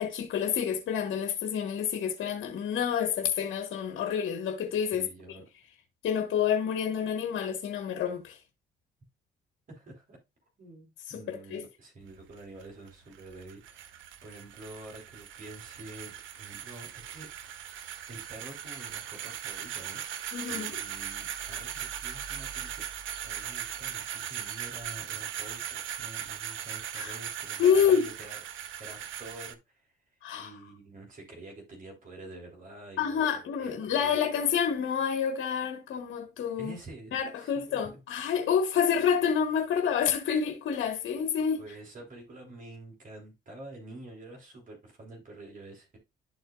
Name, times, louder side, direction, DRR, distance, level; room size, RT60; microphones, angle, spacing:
voice 1, 0.0-5.4 6.0-8.4 11.1-11.6 20.3-20.7 26.9-27.1 27.6-28.1 30.2-30.5 33.0-36.7 37.1-41.6, left 7 dB, 70° left, 1.4 m, -28 dB
voice 2, 4.9-5.5 9.7-10.2 10.6-17.8 18.1-22.8 23.2-29.9 30.3-34.2 36.6-38.0 41.6-46.0, right 2 dB, 40° right, 3.3 m, -48 dB
sound 1, 12.0-29.5, right 10 dB, 75° right, 0.9 m, -39 dB
12.0 x 4.4 x 2.3 m
cardioid pair, 90°, 20 cm